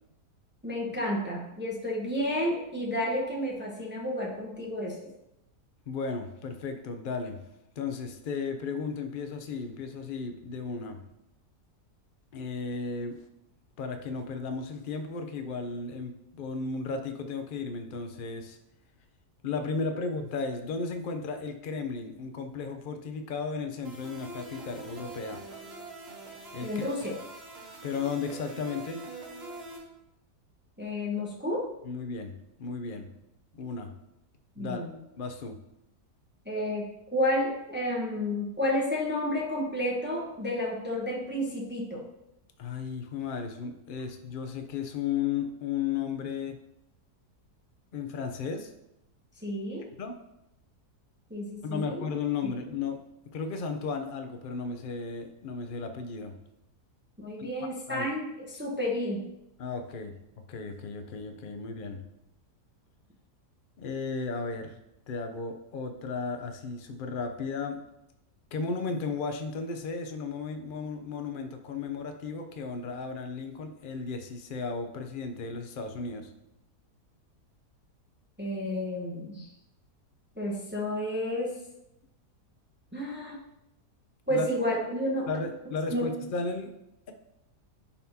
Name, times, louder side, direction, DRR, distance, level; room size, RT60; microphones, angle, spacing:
voice 1, 0.6-5.1 26.6-27.1 30.8-31.7 34.6-34.9 36.4-36.9 37.1-42.1 49.4-49.9 51.3-52.0 52.4-52.5 57.2-59.2 78.4-79.5 80.4-81.6 82.9-83.4 84.3-85.3 85.9-86.1, left 1 dB, 10° right, -2 dB, 0.8 m, -31 dB
voice 2, 5.9-7.4 7.8-11.0 12.3-13.2 13.8-18.6 19.4-25.4 26.5-26.8 27.8-29.0 31.8-33.1 33.5-33.9 34.6-34.8 35.2-35.6 42.6-46.6 47.9-48.7 50.0-50.1 51.6-53.0 53.3-56.4 57.4-57.5 57.9-58.1 59.6-60.2 60.5-62.0 63.8-64.8 65.1-67.8 68.5-76.3 84.3-84.5 85.3-86.7, left 5 dB, 60° left, 6 dB, 0.5 m, -34 dB
sound 1, 23.8-29.8, right 2 dB, 40° right, 1.5 m, -44 dB
10.5 x 4.3 x 2.8 m, 0.85 s
omnidirectional pair, 1.8 m